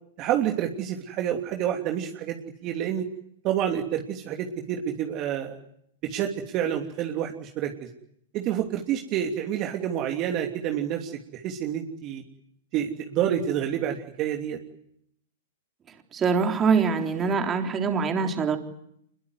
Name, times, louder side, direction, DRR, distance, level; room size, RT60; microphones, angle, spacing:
voice 1, 0.2-2.4 2.6-3.1 3.4-5.6 6.0-7.9 8.3-12.2 12.7-14.6, right 10 dB, 40° right, 3 dB, 3.0 m, -28 dB
voice 2, 16.1-18.6, right 5 dB, 25° right, 5 dB, 3.7 m, -24 dB
25.5 x 22.0 x 9.5 m, 0.73 s
hypercardioid pair, 120°, 0 cm